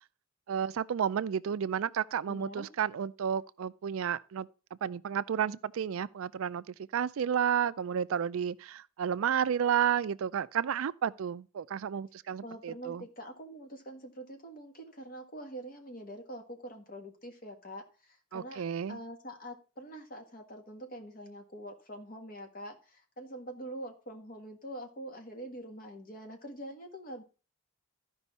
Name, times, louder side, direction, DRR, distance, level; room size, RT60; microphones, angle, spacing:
voice 1, 0.5-4.5 4.8-13.0 18.3-19.0, right 8 dB, 65° right, 0.4 m, -31 dB
voice 2, 2.3-2.7 12.4-27.2, right 1 dB, 40° left, 1.7 m, -45 dB
13.5 x 5.4 x 4.1 m
head